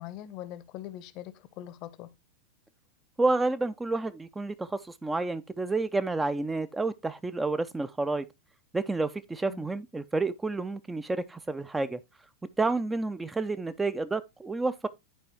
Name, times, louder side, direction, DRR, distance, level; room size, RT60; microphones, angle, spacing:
voice 1, 0.0-2.1 9.4-9.7, left 13 dB, 40° left, 0.6 m, -42 dB
voice 2, 3.2-8.3 8.7-12.0 12.6-14.9, right 3 dB, 10° right, 0.3 m, -30 dB
10.5 x 4.6 x 3.0 m
figure-of-eight pair, 90°, 0 cm